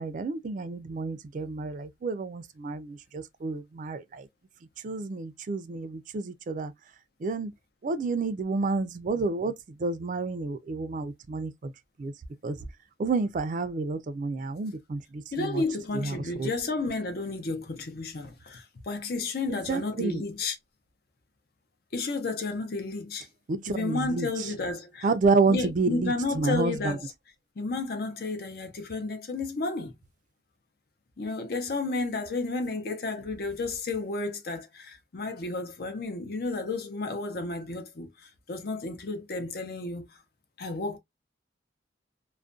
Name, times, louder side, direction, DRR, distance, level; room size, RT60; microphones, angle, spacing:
voice 1, 0.0-4.2 4.8-6.7 7.2-7.5 7.8-9.5 9.8-11.7 12.0-12.1 12.4-12.6 13.0-15.6 16.4-16.5 19.5-20.2 23.5-24.3 25.0-26.7, right 3 dB, 45° right, 0.3 m, -29 dB
voice 2, 15.3-20.6 21.9-23.3 23.7-25.1 25.5-27.1 27.6-29.9 31.2-40.2 40.6-41.0, left 3 dB, 60° left, 0.6 m, -32 dB
2.4 x 2.1 x 2.4 m
head